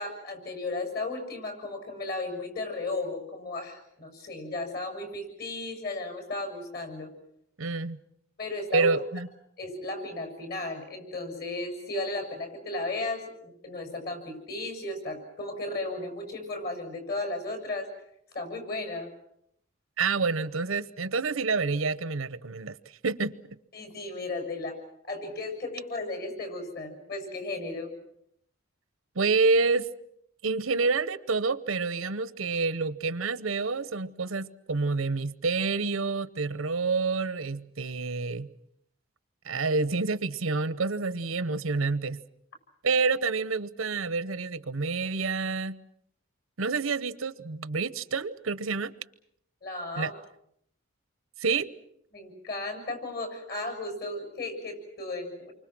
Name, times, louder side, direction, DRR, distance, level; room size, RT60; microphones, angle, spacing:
voice 1, 0.0-7.1 8.4-8.9 9.6-17.9 18.3-19.1 23.7-24.8 25.0-27.9 49.6-50.1 52.1-55.5, left 2 dB, 50° left, 6 dB, 7.0 m, -35 dB
voice 2, 7.6-8.0 8.7-9.3 20.0-22.8 23.0-23.3 29.1-29.9 30.4-38.5 39.4-42.2 42.8-45.8 46.6-48.9 50.0-50.1 51.4-51.7, right 4 dB, 85° right, 15 dB, 0.9 m, -28 dB
29.0 x 24.5 x 6.1 m, 0.72 s
head